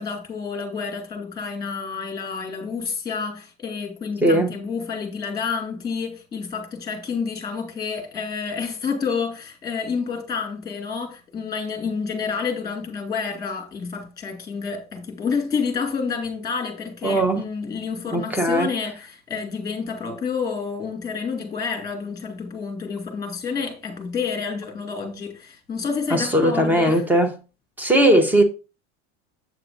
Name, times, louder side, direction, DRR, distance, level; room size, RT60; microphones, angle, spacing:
voice 1, 0.0-27.0, left 5 dB, 10° left, 2.1 m, -29 dB
voice 2, 4.2-4.5 17.0-17.4 18.1-18.7 26.1-27.3 27.8-28.4, right 1 dB, 5° right, 0.8 m, -18 dB
8.0 x 7.6 x 2.6 m
cardioid pair, 160°, 36 cm